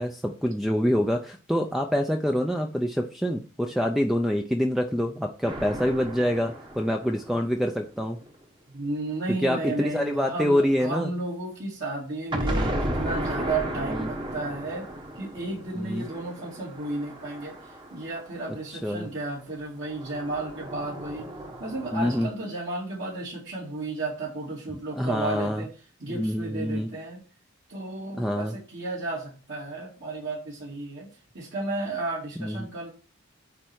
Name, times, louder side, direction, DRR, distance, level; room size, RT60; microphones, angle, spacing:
voice 1, 0.0-8.2 9.3-11.1 12.5-12.7 13.9-14.1 15.8-16.1 18.8-19.1 21.9-22.3 24.9-25.6 26.1-26.9 28.2-28.5 32.4-32.7, equal, ahead, 3 dB, 0.5 m, -26 dB
sound 1, 5.5-8.3 12.3-18.6 19.8-22.3, right 1 dB, 25° right, 1.2 m, -34 dB
voice 2, 8.7-14.9 15.2-17.5 17.9-21.2 21.6-25.7 26.0-27.2 27.7-31.1 31.3-32.9, right 2 dB, 60° right, -5 dB, 2.5 m, -33 dB
8.7 x 3.4 x 6.2 m, 0.37 s
head